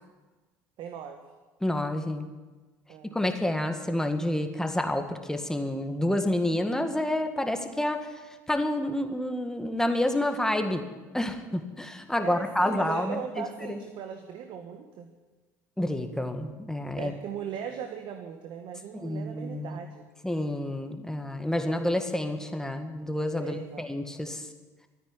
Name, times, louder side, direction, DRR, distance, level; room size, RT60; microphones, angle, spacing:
voice 1, 0.8-1.2 2.9-3.2 12.2-15.1 17.0-20.0 23.4-23.8, right 8 dB, 55° right, 5 dB, 1.5 m, -38 dB
voice 2, 1.6-2.3 3.1-8.2 8.5-10.8 11.1-13.8 15.8-17.1 19.0-19.8 20.2-24.5, left 1 dB, 5° left, 6 dB, 1.9 m, -29 dB
14.0 x 9.8 x 9.7 m, 1.2 s
hypercardioid pair, 70°, 9 cm